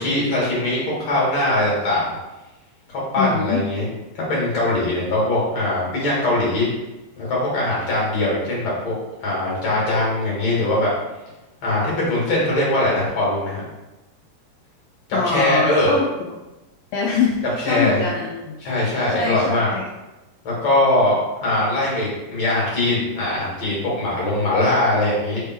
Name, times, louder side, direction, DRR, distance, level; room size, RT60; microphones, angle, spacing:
voice 1, 0.0-2.1 2.9-3.9 4.1-6.7 7.2-8.9 9.2-10.9 11.6-13.6 15.2-15.9 17.6-18.0 18.6-19.7 20.4-25.4, left 1 dB, 45° left, -5 dB, 2.5 m, -21 dB
voice 2, 3.2-3.6 15.1-16.1 16.9-18.5 19.1-19.8, left 5 dB, 90° left, -2 dB, 2.0 m, -23 dB
6.3 x 3.5 x 4.5 m, 1.1 s
omnidirectional pair, 4.9 m